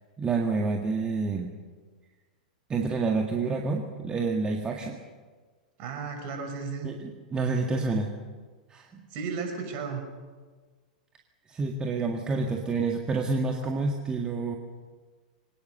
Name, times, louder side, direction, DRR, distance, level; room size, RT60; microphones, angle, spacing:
voice 1, 0.2-1.5 2.7-5.0 6.8-8.1 8.7-9.0 11.5-14.6, right 3 dB, 20° right, 2 dB, 1.9 m, -28 dB
voice 2, 5.8-6.9 9.1-10.0, right 5 dB, 40° right, 4 dB, 6.0 m, -34 dB
24.0 x 18.5 x 6.8 m, 1.4 s
figure-of-eight pair, 100°, 5 cm